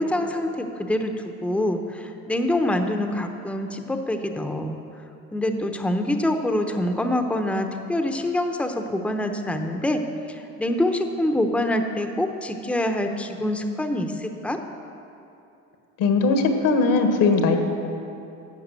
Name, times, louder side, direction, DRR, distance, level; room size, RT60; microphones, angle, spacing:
voice 1, 0.0-4.8 5.3-10.0 10.3-14.6, left 1 dB, 5° left, 5 dB, 0.8 m, -25 dB
voice 2, 16.0-17.6, left 3 dB, 65° left, 5 dB, 1.6 m, -19 dB
11.5 x 7.2 x 7.6 m, 2.7 s
supercardioid pair, 90°, 35 cm